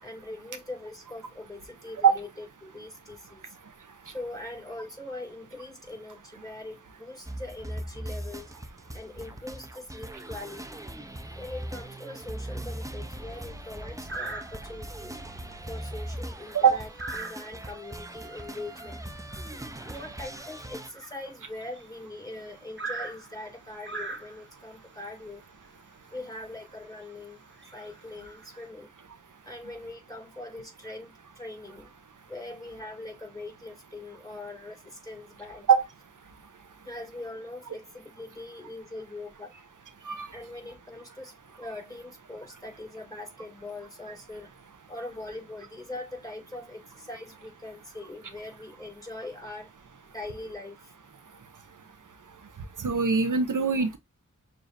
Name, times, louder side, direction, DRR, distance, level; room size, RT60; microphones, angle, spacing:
voice 1, 0.0-3.6 4.0-8.5 8.9-10.8 11.4-15.2 15.7-19.0 19.9-25.4 26.1-27.4 27.7-28.9 29.4-31.9 32.3-35.7 36.8-39.5 40.3-44.5 44.9-49.7 50.1-50.9, left 2 dB, 10° left, 3.8 m, -42 dB
sound 1, 7.3-20.9, right 1 dB, 10° right, 0.7 m, -40 dB
sound 2, 13.0-13.3 14.1-14.9 15.3-15.5 15.8-22.0 22.8-24.7 25.6-25.8 26.2-26.3 26.8-27.0 27.5-28.6, right 3 dB, 40° right, 1.4 m, -41 dB
voice 2, 52.8-54.0, right 6 dB, 75° right, 0.7 m, -21 dB
6.7 x 2.6 x 2.6 m
wide cardioid pair, 45°, 32 cm